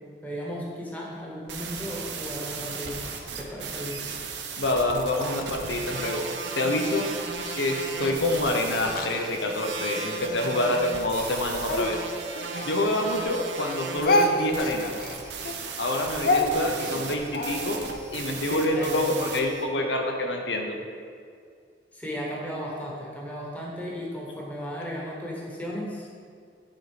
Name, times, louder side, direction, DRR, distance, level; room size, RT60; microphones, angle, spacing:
voice 1, 0.2-3.0 3.4-4.0 15.4-15.5 18.5-19.2 21.9-26.1, equal, 10° left, -4 dB, 1.2 m, -35 dB
sound 1, 1.2-1.3 1.5-19.6, right 4 dB, 80° right, 0.8 m, -36 dB
voice 2, 4.6-6.3 6.6-7.1 7.5-12.0 12.6-14.9 15.8-17.8 18.1-20.8, left 1 dB, 85° left, 3 dB, 0.8 m, -27 dB
Speech, 6.8-9.9 10.5-13.3 13.6-18.0, left 1 dB, 55° left, 0.5 m, -29 dB
9.7 x 4.1 x 5.0 m, 2.2 s
head